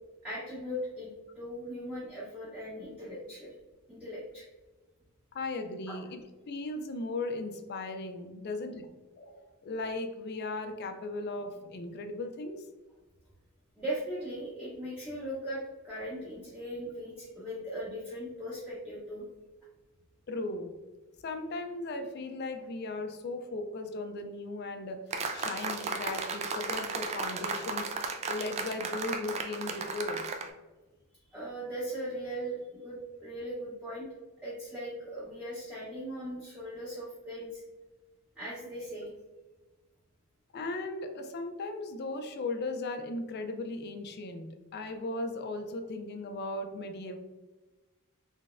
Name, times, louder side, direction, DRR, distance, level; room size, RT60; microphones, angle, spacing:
voice 1, 0.2-1.1 1.3-3.5 3.9-4.4 5.9-6.0 13.8-19.3 31.3-34.1 34.4-37.6 38.4-39.1, equal, 5° right, -9 dB, 0.8 m, -39 dB
voice 2, 5.3-8.9 9.2-12.6 20.3-20.7 21.2-25.0 25.3-27.9 28.3-30.3 40.5-47.2, left 2 dB, 45° left, 6 dB, 0.4 m, -37 dB
sound 1, 25.1-30.5, right 4 dB, 30° right, 0.3 m, -35 dB
3.9 x 3.2 x 2.5 m, 1.2 s
head